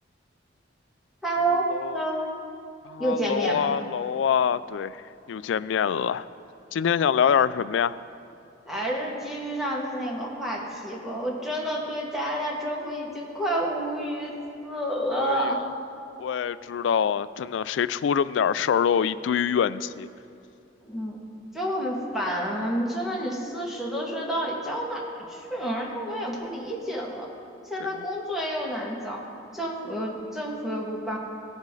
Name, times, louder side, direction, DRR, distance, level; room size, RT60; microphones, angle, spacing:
voice 1, 1.2-1.6 1.9-2.2 3.0-3.7 8.7-14.3 14.6-15.6 20.8-21.2 21.5-25.0 25.3-27.3 27.7-29.2 29.5-31.2, right 1 dB, ahead, -3 dB, 1.7 m, -29 dB
voice 2, 2.9-5.0 5.3-6.2 6.7-8.0 15.1-15.6 16.2-20.1, left 7 dB, 75° left, 17 dB, 0.3 m, -25 dB
17.5 x 7.2 x 3.8 m, 2.7 s
head